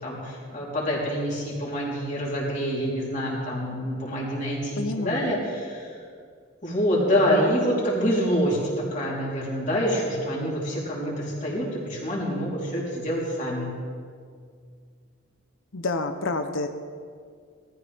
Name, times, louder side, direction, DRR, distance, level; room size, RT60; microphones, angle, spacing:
voice 1, 0.0-6.0 6.6-13.7, equal, 35° left, -5 dB, 3.6 m, -26 dB
voice 2, 4.8-5.3 15.7-16.7, left 2 dB, 75° left, 7 dB, 0.7 m, -28 dB
19.0 x 13.5 x 3.5 m, 2.1 s
head